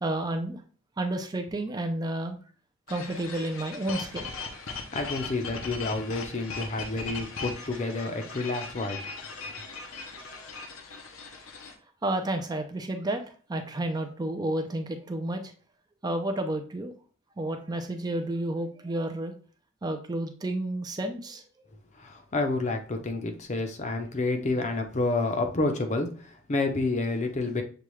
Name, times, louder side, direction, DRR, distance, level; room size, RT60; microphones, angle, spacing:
voice 1, 0.0-0.6 1.0-2.4 2.9-4.3 12.0-13.2 13.5-15.5 16.0-16.9 17.4-19.3 19.8-21.4, right 1 dB, 20° right, 5 dB, 0.4 m, -31 dB
sound 1, 2.9-11.8, left 4 dB, 75° left, 0.8 m, -39 dB
voice 2, 4.9-9.0 22.0-27.6, left 2 dB, 35° left, 5 dB, 0.6 m, -29 dB
6.9 x 2.3 x 3.1 m, 0.42 s
head